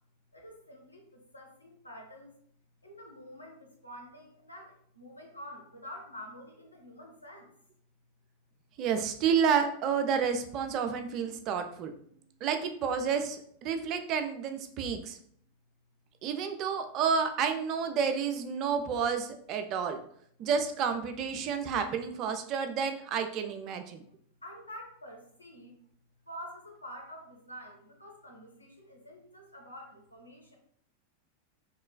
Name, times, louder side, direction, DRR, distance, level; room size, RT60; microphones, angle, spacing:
voice 1, 0.3-2.3 2.8-7.5 24.4-25.7 26.3-30.6, equal, 85° left, 0 dB, 0.8 m, -48 dB
voice 2, 8.8-11.9 12.4-15.2 16.2-20.0 20.4-24.0, right 6 dB, 35° right, 7 dB, 0.4 m, -30 dB
3.1 x 2.9 x 2.2 m, 0.64 s
figure-of-eight pair, 90°, 0 cm